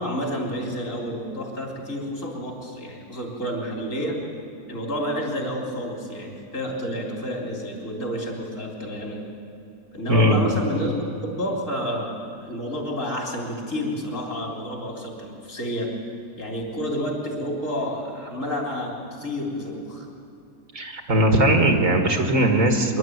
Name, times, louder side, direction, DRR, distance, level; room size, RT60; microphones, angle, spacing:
voice 1, 0.0-4.2 4.7-9.3 9.9-11.0 11.2-16.0 16.4-20.1, equal, 50° left, 0 dB, 3.9 m, -30 dB
voice 2, 10.1-10.4 20.7-23.0, right 1 dB, 55° right, 4 dB, 2.1 m, -19 dB
24.0 x 11.5 x 9.3 m, 2.7 s
omnidirectional pair, 1.7 m